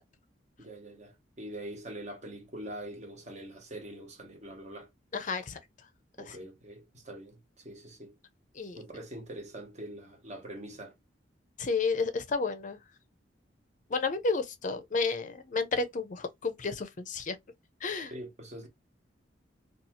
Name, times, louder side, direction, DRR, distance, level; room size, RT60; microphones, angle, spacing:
voice 1, 0.6-4.9 6.2-8.2 8.8-10.9 18.1-18.7, right 1 dB, 40° right, 1.0 m, -44 dB
voice 2, 5.1-5.6 8.6-8.8 11.6-12.8 13.9-17.4 17.8-18.1, left 4 dB, 45° left, 0.5 m, -31 dB
2.7 x 2.3 x 2.7 m
head